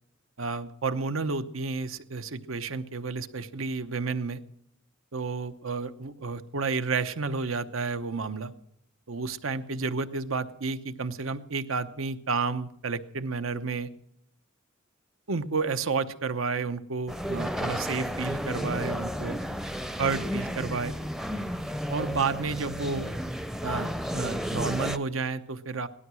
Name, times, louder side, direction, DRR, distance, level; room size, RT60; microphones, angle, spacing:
voice 1, 0.4-4.4 5.1-8.5 9.1-13.9 15.3-19.4 20.0-21.0 21.9-23.1 23.6-25.9, right 4 dB, 90° right, 11 dB, 0.9 m, -31 dB
sound 1, 17.1-25.0, equal, ahead, 0.5 m, -32 dB
17.5 x 12.5 x 6.3 m, 0.74 s
head